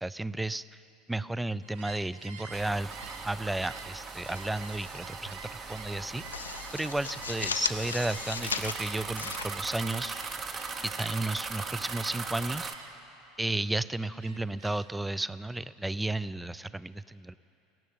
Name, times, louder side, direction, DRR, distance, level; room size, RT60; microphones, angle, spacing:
voice 1, 0.0-0.6 1.1-2.9 3.2-5.4 5.7-10.2 10.8-12.9 13.4-17.4, right 2 dB, 5° right, 18 dB, 0.3 m, -33 dB
Gull seagull, 1.6-8.4 8.7-11.4 11.8-12.3 12.6-13.1 13.5-14.9, right 5 dB, 65° right, 0.9 m, -48 dB
sound 1, 2.5-12.7, right 4 dB, 30° right, 0.8 m, -40 dB
sound 2, 4.1-5.0 5.3-5.5 5.9-10.3, left 6 dB, 80° left, 0.4 m, -37 dB
16.5 x 7.4 x 8.7 m, 2.8 s
figure-of-eight pair, 70°, 0 cm